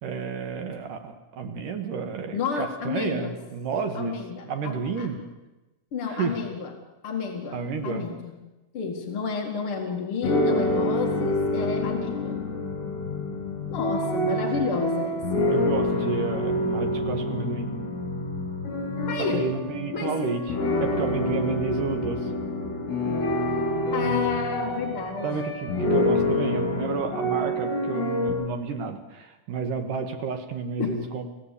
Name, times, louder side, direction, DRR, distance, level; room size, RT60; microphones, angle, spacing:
voice 1, 0.0-4.1 4.4-5.2 6.1-6.4 7.5-8.0 15.5-17.7 19.3-22.3 25.2-31.3, right 5 dB, 60° right, 6 dB, 2.4 m, -31 dB
voice 2, 2.3-3.3 3.9-5.1 5.9-6.7 7.0-8.3 8.7-12.4 13.7-15.5 19.1-19.5 19.9-20.1 23.9-25.5 30.8-30.9, left 5 dB, 55° left, 2 dB, 1.5 m, -31 dB
sound 1, 10.2-28.3, left 1 dB, 80° left, 7.2 m, -27 dB
28.0 x 16.5 x 8.5 m, 1.1 s
omnidirectional pair, 5.8 m